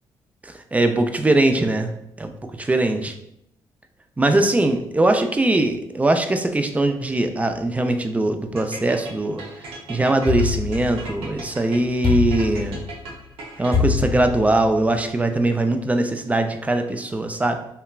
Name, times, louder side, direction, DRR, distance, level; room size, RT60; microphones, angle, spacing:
voice 1, 0.7-1.9 2.2-2.3 2.6-3.1 4.2-9.4 9.9-12.8 13.6-17.6, right 2 dB, 15° right, 6 dB, 0.3 m, -21 dB
sound 1, 8.6-14.1, right 2 dB, 80° right, 0.6 m, -38 dB
sound 2, 10.3-11.4 12.0-13.1 13.7-14.8, left 5 dB, 10° left, 0.9 m, -24 dB
2.9 x 2.2 x 2.3 m, 0.78 s
cardioid pair, 70°, 9 cm